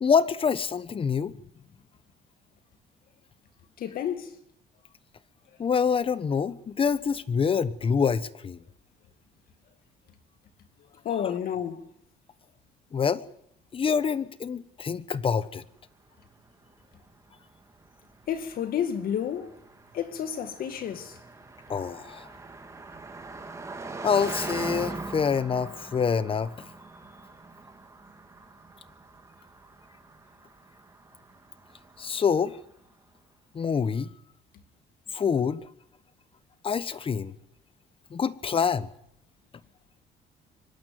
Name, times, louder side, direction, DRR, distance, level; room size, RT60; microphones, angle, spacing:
voice 1, 0.0-1.4 5.6-8.6 12.9-13.2 13.7-15.6 21.7-22.3 24.0-26.7 32.0-32.6 33.5-34.1 35.1-35.7 36.6-37.3 38.1-38.9, left 6 dB, 30° left, 1.1 m, -26 dB
voice 2, 3.8-4.4 11.0-11.9 18.3-19.6 19.9-21.2, left 9 dB, 60° left, 2.2 m, -30 dB
Car passing by, 16.2-32.6, right 3 dB, 15° right, 2.6 m, -42 dB
24.5 x 12.0 x 9.4 m
cardioid pair, 110°, 17 cm